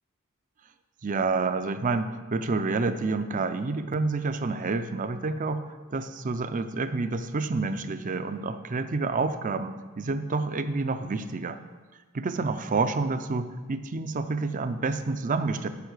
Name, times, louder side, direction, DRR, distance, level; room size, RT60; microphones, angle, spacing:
voice 1, 1.0-5.6 5.9-11.6 12.1-15.7, right 3 dB, 35° right, 10 dB, 0.5 m, -28 dB
8.2 x 5.8 x 6.4 m, 1.3 s
head